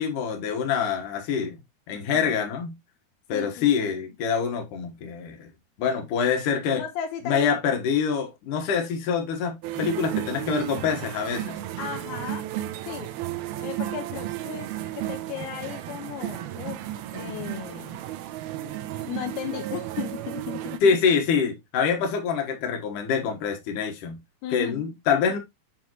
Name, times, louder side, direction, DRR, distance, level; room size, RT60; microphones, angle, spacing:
voice 1, 0.0-1.6 1.9-2.8 3.3-5.5 5.8-6.8 7.2-11.6 20.8-24.2 24.5-25.4, left 6 dB, 60° left, 2.7 m, -25 dB
voice 2, 1.9-2.3 3.3-4.0 6.7-7.5 11.8-12.4 12.8-13.1 13.6-16.8 17.1-18.0 18.6-21.0 24.4-24.8, left 9 dB, 85° left, 2.7 m, -36 dB
sound 1, 9.6-20.8, right 13 dB, 80° right, 2.6 m, -33 dB
7.7 x 5.0 x 3.0 m
omnidirectional pair, 4.6 m